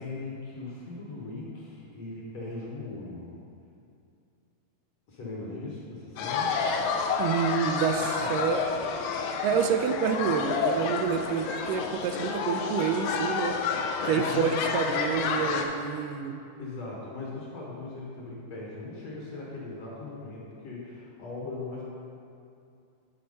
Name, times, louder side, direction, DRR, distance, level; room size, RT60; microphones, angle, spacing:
voice 1, 0.0-3.3 5.1-6.5 8.1-8.5 14.1-14.6 16.6-21.8, left 3 dB, 60° left, -4 dB, 2.0 m, -39 dB
sound 1, 6.2-15.6, left 5 dB, 80° left, 2.2 m, -29 dB
voice 2, 7.2-8.6 9.4-13.5 14.0-16.4, right 7 dB, 85° right, 6 dB, 2.1 m, -28 dB
9.7 x 4.4 x 5.3 m, 2.5 s
omnidirectional pair, 3.8 m